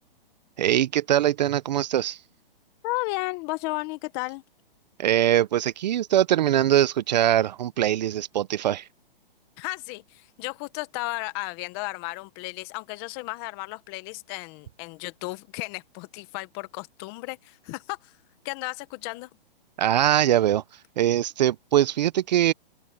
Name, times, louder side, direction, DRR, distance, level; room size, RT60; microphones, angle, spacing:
voice 1, 0.6-2.2 5.0-8.8 19.8-20.6 21.0-22.5, right 12 dB, 45° right, 0.8 m, -22 dB
voice 2, 2.8-4.4 9.6-18.1 18.4-19.3, left 23 dB, 25° left, 1.2 m, -34 dB
hypercardioid pair, 155°, 30 cm